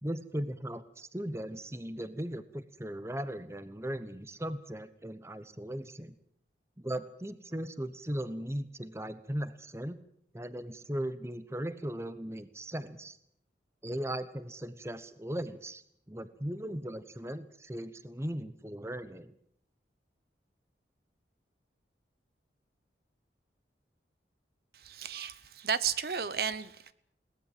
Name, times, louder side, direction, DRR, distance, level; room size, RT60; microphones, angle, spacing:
voice 1, 0.0-6.1 6.8-10.0 10.3-13.2 13.8-15.8 16.1-19.4, right 1 dB, 15° right, 13 dB, 1.0 m, -38 dB
voice 2, 24.7-26.9, right 7 dB, 55° right, 15 dB, 0.9 m, -33 dB
22.0 x 18.5 x 7.5 m, 0.69 s
head